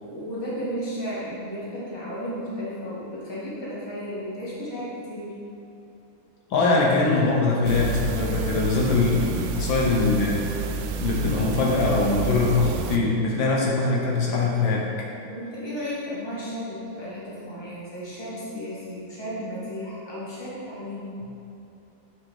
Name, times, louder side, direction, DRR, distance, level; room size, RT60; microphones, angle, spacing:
voice 1, 0.0-5.3 15.3-21.1, equal, 15° left, -8 dB, 1.6 m, -34 dB
voice 2, 6.5-10.5 11.0-14.9, left 3 dB, 75° left, -3 dB, 1.6 m, -22 dB
sound 1, 7.6-13.0, right 4 dB, 90° right, 1.4 m, -30 dB
7.6 x 6.4 x 3.6 m, 2.9 s
omnidirectional pair, 2.2 m